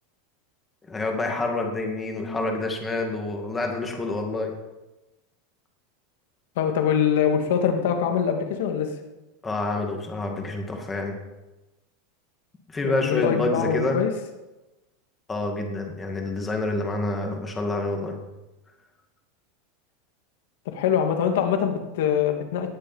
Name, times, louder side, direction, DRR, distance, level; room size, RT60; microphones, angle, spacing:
voice 1, 0.9-4.5 9.4-11.2 12.7-14.0 15.3-18.2, left 2 dB, 10° left, 2 dB, 2.2 m, -27 dB
voice 2, 6.6-8.9 12.8-14.1 20.7-22.7, left 8 dB, 70° left, 5 dB, 2.4 m, -23 dB
18.5 x 7.2 x 7.4 m, 1.1 s
supercardioid pair, 165°, 0 cm